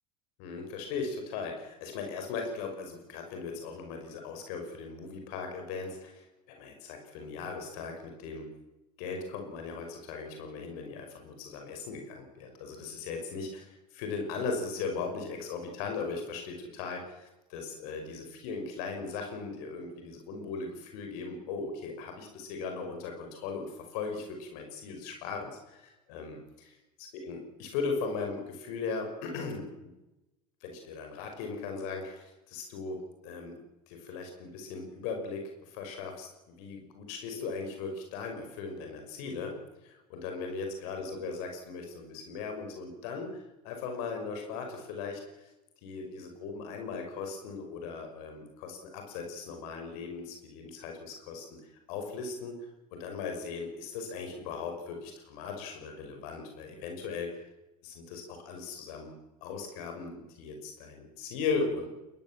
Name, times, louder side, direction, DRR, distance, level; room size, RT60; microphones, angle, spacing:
voice 1, 0.4-8.5 9.0-26.7 27.0-29.9 30.6-33.0 33.2-39.6 39.8-45.5 45.8-51.5 51.9-52.6 52.9-57.5 57.8-59.1 59.4-61.9, left 4 dB, 70° left, 4 dB, 5.6 m, -38 dB
22.0 x 20.5 x 7.5 m, 0.98 s
hypercardioid pair, 80°, 20 cm